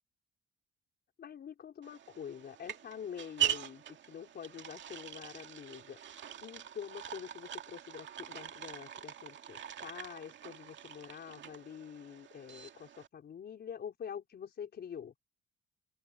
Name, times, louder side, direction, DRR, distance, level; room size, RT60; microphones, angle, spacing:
voice 1, 1.2-15.1, left 8 dB, 55° left, 4.7 m, -46 dB
sound 1, 1.8-13.1, right 10 dB, 65° right, 2.2 m, -42 dB
open air
cardioid pair, 90°, 20 cm